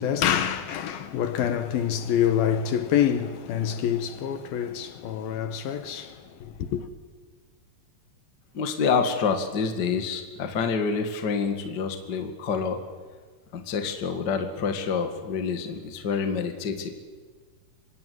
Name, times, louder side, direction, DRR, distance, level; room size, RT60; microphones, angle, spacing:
voice 1, 0.0-6.9, left 9 dB, 70° left, 2.8 m, -26 dB
voice 2, 8.5-12.8 13.5-16.9, left 5 dB, 35° left, 1.8 m, -27 dB
25.5 x 24.0 x 9.5 m
omnidirectional pair, 4.7 m